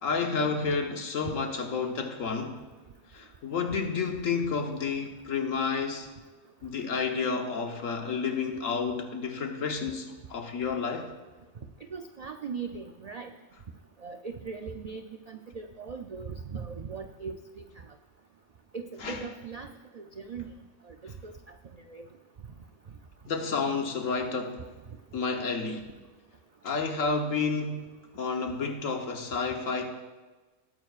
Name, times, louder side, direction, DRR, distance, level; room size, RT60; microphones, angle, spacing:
voice 1, 0.0-2.6 3.1-6.1 6.6-11.1 19.0-19.2 23.3-24.6 25.1-25.9 26.6-27.8 28.1-29.9, left 5 dB, 90° left, 4 dB, 1.5 m, -30 dB
voice 2, 11.9-13.3 14.0-15.0 15.3-17.6 18.7-19.7 19.9-20.5 21.0-21.3 21.9-22.0, right 5 dB, 75° right, 6 dB, 0.3 m, -39 dB
19.0 x 9.1 x 2.4 m, 1.2 s
omnidirectional pair, 1.3 m